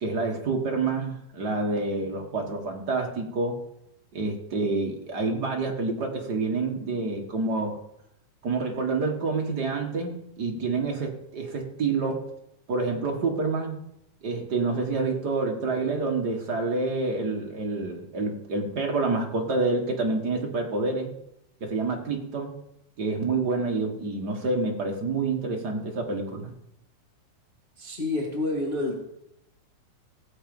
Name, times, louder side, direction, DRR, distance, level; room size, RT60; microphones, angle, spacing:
voice 1, 0.0-3.5 4.1-7.8 8.4-12.2 12.7-13.8 14.2-21.1 21.6-22.5 23.0-26.5, right 3 dB, 45° right, 1 dB, 1.3 m, -28 dB
voice 2, 27.8-29.0, left 2 dB, 20° left, -2 dB, 1.7 m, -28 dB
16.5 x 7.2 x 5.3 m, 0.81 s
omnidirectional pair, 3.7 m